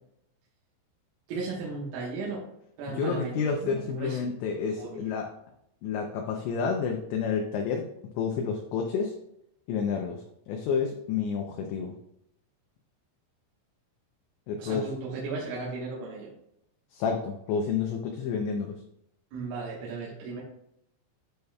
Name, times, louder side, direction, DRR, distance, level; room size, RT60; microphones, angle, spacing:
voice 1, 1.3-2.5 2.8-4.2 4.7-5.1 14.6-16.3 19.3-20.4, right 3 dB, 80° right, -5 dB, 3.9 m, -36 dB
voice 2, 2.9-5.3 5.8-7.9 8.2-9.1 9.7-11.9 14.5-14.9 16.9-18.8, left 6 dB, 80° left, 2 dB, 2.7 m, -30 dB
12.5 x 5.1 x 2.3 m, 0.77 s
omnidirectional pair, 5.7 m